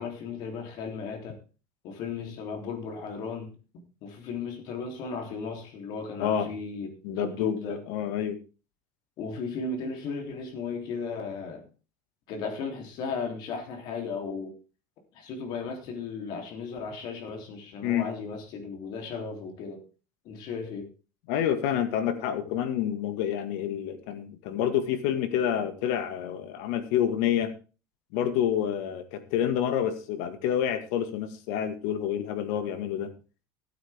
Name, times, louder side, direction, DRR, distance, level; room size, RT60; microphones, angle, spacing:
voice 1, 0.0-1.4 1.8-7.8 9.2-11.7 12.3-14.5 15.1-19.8 20.2-20.9, left 4 dB, 55° left, 3 dB, 3.4 m, -36 dB
voice 2, 7.0-8.4 17.8-18.1 21.3-27.5 28.1-33.1, left 9 dB, 75° left, 9 dB, 1.9 m, -28 dB
15.5 x 9.0 x 3.6 m, 0.34 s
cardioid pair, 145°, 9 cm